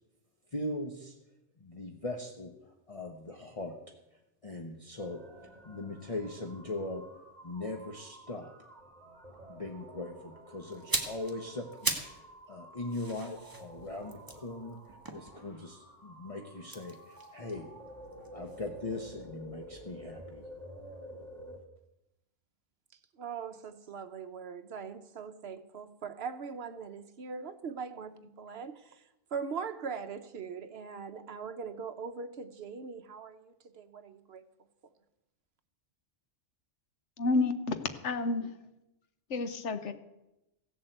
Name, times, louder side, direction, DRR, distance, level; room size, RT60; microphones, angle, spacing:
voice 1, 0.5-1.2 1.6-3.7 4.4-5.2 5.6-7.0 7.4-8.5 9.5-12.2 12.5-17.7 18.3-20.4, left 2 dB, 30° left, 1.0 m, -40 dB
sound 1, 5.0-21.6, equal, 35° right, 2.3 m, -51 dB
sound 2, 10.7-12.2 12.5-15.8 16.6-18.6 18.9-19.1, right 2 dB, 20° right, 1.4 m, -38 dB
voice 2, 23.2-29.0 29.3-34.4, right 6 dB, 60° right, 1.1 m, -41 dB
voice 3, 37.2-38.5 39.3-39.9, left 3 dB, 75° left, 1.3 m, -30 dB
15.5 x 7.6 x 7.9 m
omnidirectional pair, 1.2 m